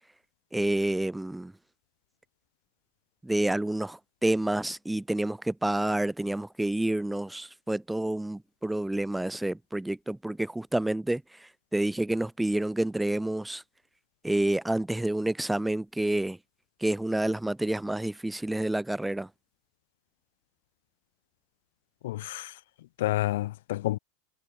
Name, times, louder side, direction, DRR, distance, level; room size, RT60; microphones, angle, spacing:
voice 1, 0.5-1.5 3.2-11.2 11.7-13.6 14.2-16.4 16.8-19.3, right 1 dB, 5° right, 1.0 m, -28 dB
voice 2, 22.0-22.5 23.0-24.0, left 16 dB, 75° left, 0.8 m, -29 dB
hypercardioid pair, 120°, 0 cm